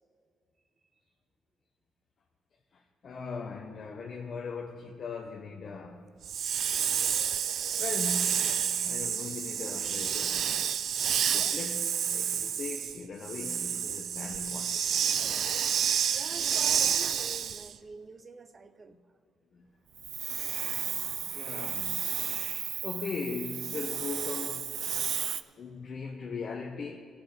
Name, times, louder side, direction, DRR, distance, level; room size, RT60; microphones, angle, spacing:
voice 1, 2.7-6.1 7.8-8.4 8.8-10.6 11.3-14.9 15.2-15.5 19.5-19.7 21.2-22.1 22.8-24.7 25.6-27.0, left 4 dB, 50° left, 0.9 m, -39 dB
Hiss, 6.2-17.7 20.0-25.4, right 8 dB, 65° right, 0.4 m, -30 dB
voice 2, 16.0-19.0, right 3 dB, 35° right, 0.7 m, -46 dB
17.5 x 6.0 x 5.3 m
cardioid pair, 90°, 0 cm